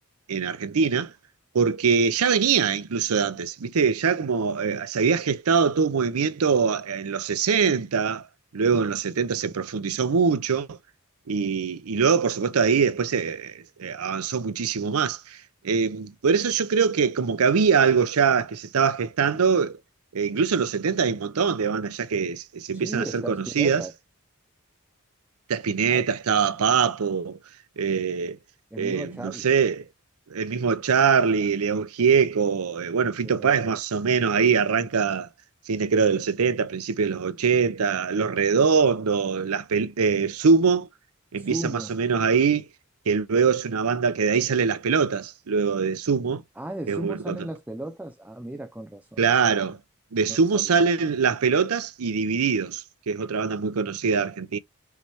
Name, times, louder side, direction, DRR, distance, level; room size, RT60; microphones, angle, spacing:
voice 1, 0.3-1.1 1.5-8.2 8.5-10.8 11.3-15.2 15.6-19.8 20.1-23.8 25.5-27.4 27.8-28.4 28.8-29.8 30.3-35.3 35.7-40.9 41.3-42.7 43.1-46.4 46.9-47.4 49.2-49.8 50.1-54.6, right 5 dB, 90° right, 0.6 m, -23 dB
voice 2, 22.7-23.9 25.9-26.0 28.7-29.5 33.2-33.7 41.4-41.9 46.6-49.2 50.3-50.6, right 1 dB, 5° right, 0.4 m, -35 dB
5.7 x 3.2 x 2.8 m
head